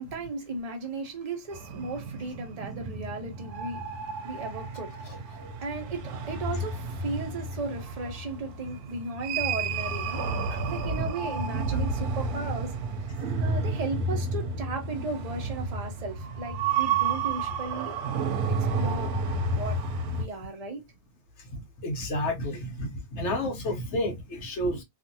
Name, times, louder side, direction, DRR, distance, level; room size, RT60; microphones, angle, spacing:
voice 1, 0.0-10.2 10.7-12.7 13.0-13.2 13.4-18.0 18.5-19.2 19.5-19.8 20.1-20.8, right 3 dB, 35° right, 0.7 m, -36 dB
sound 1, 1.5-20.3, right 3 dB, 90° right, 1.1 m, -31 dB
voice 2, 5.1-5.6 10.5-11.1 11.7-11.8 21.4-24.8, left 1 dB, 60° left, 0.9 m, -31 dB
2.6 x 2.5 x 2.5 m
omnidirectional pair, 1.5 m